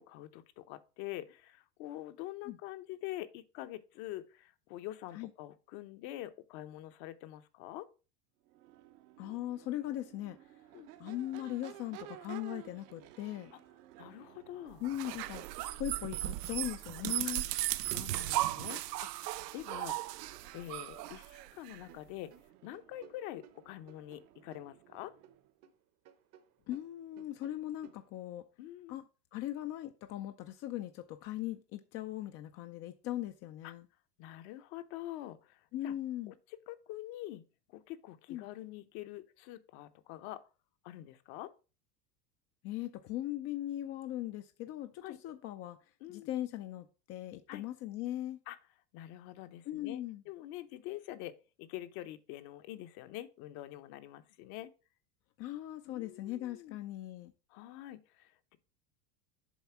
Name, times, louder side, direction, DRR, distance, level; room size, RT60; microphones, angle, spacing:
voice 1, 0.0-7.9 10.7-10.9 13.5-13.6 14.0-14.8 17.2-22.3 22.6-25.1 28.6-29.0 33.6-33.7 34.2-35.9 36.3-37.4 37.7-40.4 40.8-41.5 45.0-45.2 46.0-46.3 47.5-47.6 48.5-48.6 48.9-51.3 51.6-54.7 55.8-56.8 57.5-58.6, left 14 dB, 50° left, 0.9 m, -46 dB
Crowd / Race car auto racing / Accelerating revving vroom, 8.4-25.5, right 14 dB, 70° right, 1.0 m, -56 dB
voice 2, 9.2-10.4 11.0-13.5 14.8-15.5 15.8-17.5 26.7-28.5 28.9-29.0 29.3-33.9 35.7-36.3 38.3-38.5 42.6-45.8 46.1-48.4 49.7-50.2 55.4-57.3, left 13 dB, 30° left, 0.4 m, -39 dB
sound 1, 14.8-21.8, right 16 dB, 90° right, 0.6 m, -36 dB
sound 2, 21.8-25.8 26.0-28.1, right 9 dB, 35° right, 0.8 m, -60 dB
7.3 x 4.0 x 5.8 m
supercardioid pair, 125°, 47 cm